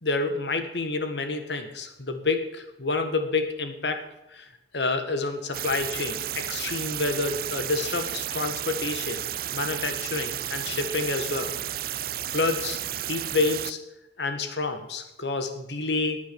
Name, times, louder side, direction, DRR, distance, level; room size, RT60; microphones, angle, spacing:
voice 1, 0.0-4.0 4.3-4.5 4.7-9.3 9.5-11.6 12.3-12.8 13.1-13.8 14.2-16.2, left 3 dB, 75° left, 7 dB, 1.7 m, -28 dB
sound 1, 5.5-13.7, right 12 dB, 55° right, 0.5 m, -32 dB
16.0 x 9.3 x 7.1 m, 0.90 s
head